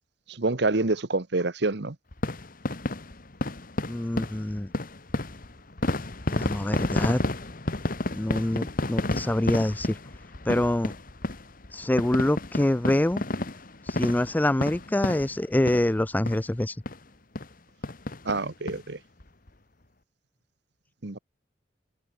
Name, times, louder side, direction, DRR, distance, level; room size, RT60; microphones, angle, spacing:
voice 1, 0.3-2.0 18.2-19.0 21.0-21.2, right 2 dB, 65° right, 1.3 m, -27 dB
sound 1, 2.1-16.0 16.3-16.4 16.9-17.0 17.4-17.5 17.8-18.8 19.2-19.3 19.5-19.6, left 2 dB, 50° left, 1.6 m, -31 dB
voice 2, 3.9-4.7 6.3-7.2 8.1-10.0 10.5-10.9 11.7-13.2 13.9-16.8, left 1 dB, 10° left, 0.4 m, -25 dB
head